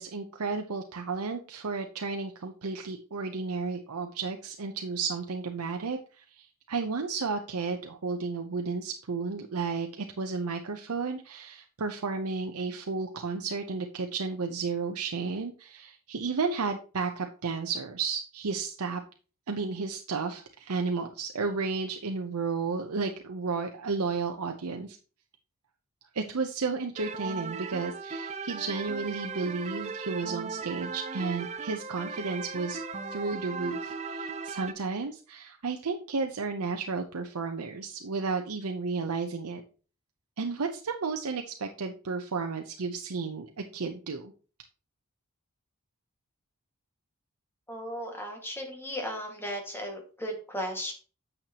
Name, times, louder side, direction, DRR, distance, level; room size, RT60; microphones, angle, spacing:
voice 1, 0.0-19.0 19.5-25.0 26.1-32.8 33.1-39.6 40.4-44.3, right 4 dB, 85° right, 5 dB, 0.7 m, -33 dB
sound 1, 27.0-34.7, right 4 dB, 30° right, 0.6 m, -37 dB
voice 2, 47.7-50.9, equal, 10° left, 1 dB, 1.8 m, -36 dB
8.9 x 6.5 x 2.9 m, 0.37 s
head